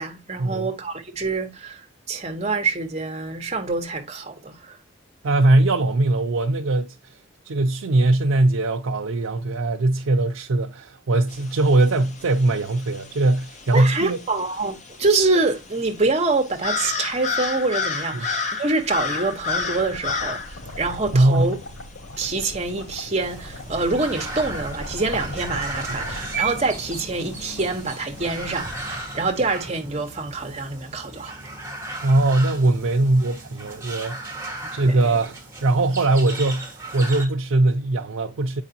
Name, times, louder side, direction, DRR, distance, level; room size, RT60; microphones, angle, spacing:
voice 1, 0.0-1.8 2.1-4.8 13.7-21.6 22.2-31.4 34.9-35.0, right 3 dB, 30° right, 1.1 m, -25 dB
voice 2, 5.2-7.2 7.4-14.2 18.1-18.3 21.1-21.5 32.0-34.3 34.7-38.6, right 2 dB, 90° right, 0.5 m, -21 dB
sound 1, 11.3-28.9, left 5 dB, 35° left, 0.8 m, -33 dB
sound 2, 18.4-29.5, left 1 dB, 90° left, 3.3 m, -39 dB
sound 3, 23.2-37.2, right 2 dB, 10° right, 1.5 m, -35 dB
8.0 x 4.9 x 2.8 m
head